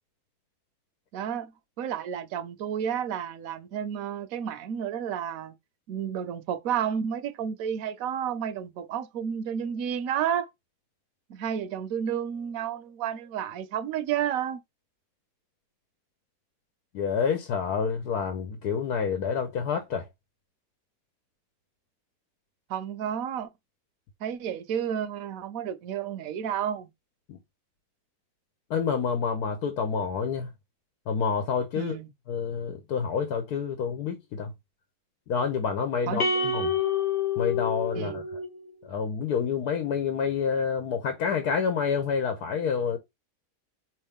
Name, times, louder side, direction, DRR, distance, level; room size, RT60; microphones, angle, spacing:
voice 1, 1.1-1.5 1.8-5.5 5.9-10.5 11.3-14.6 22.7-23.5 24.2-26.9 31.8-32.1 36.1-36.5 37.9-38.2, right 9 dB, 70° right, 1.0 m, -31 dB
voice 2, 16.9-20.1 27.3-27.4 28.7-30.5 31.1-32.0 32.3-34.5 35.3-36.7 37.4-38.2 38.8-43.0, left 6 dB, 90° left, 1.3 m, -28 dB
sound 1, 36.2-38.7, left 5 dB, 55° left, 0.6 m, -28 dB
4.5 x 3.1 x 3.5 m
omnidirectional pair, 1.6 m